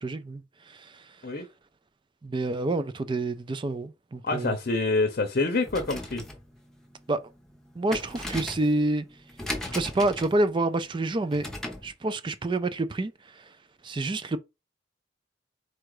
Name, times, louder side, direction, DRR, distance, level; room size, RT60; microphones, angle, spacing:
voice 1, 0.0-1.0 2.2-4.6 7.1-7.2 7.8-9.1 9.7-11.5 11.8-13.4 13.8-14.4, right 2 dB, 25° right, 0.4 m, -28 dB
voice 2, 4.2-6.2, left 3 dB, 50° left, 0.7 m, -26 dB
sound 1, 5.6-11.9, left 1 dB, 5° left, 0.8 m, -38 dB
4.4 x 2.4 x 4.7 m
head